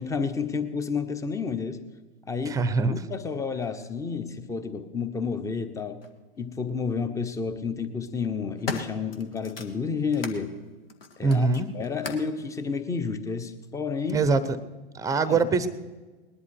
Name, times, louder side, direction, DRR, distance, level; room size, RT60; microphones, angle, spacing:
voice 1, 0.0-1.8 2.3-2.6 2.9-6.0 6.4-10.6 11.2-11.5 11.7-14.2 15.3-15.5, left 5 dB, 10° left, 10 dB, 0.9 m, -30 dB
voice 2, 2.5-2.9 11.2-11.7 14.1-14.6 14.9-15.7, right 4 dB, 10° right, 14 dB, 0.8 m, -23 dB
sound 1, 6.0-6.1 7.2-7.6 8.1-10.4 10.9-12.4 13.2-13.3, left 4 dB, 75° left, 1.5 m, -38 dB
19.5 x 11.0 x 4.6 m, 1.3 s
figure-of-eight pair, 100°, 29 cm